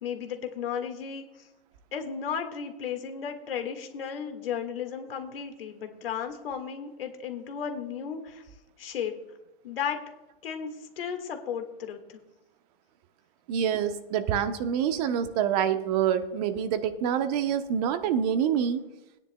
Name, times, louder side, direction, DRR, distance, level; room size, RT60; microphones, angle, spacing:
voice 1, 0.0-1.5 1.9-8.4 8.8-9.1 9.6-10.0 10.4-10.7 11.0-12.2, left 7 dB, 75° left, 5 dB, 1.7 m, -34 dB
voice 2, 13.5-18.9, right 8 dB, 40° right, 10 dB, 0.9 m, -26 dB
19.5 x 9.8 x 2.2 m, 0.98 s
hypercardioid pair, 125°, 29 cm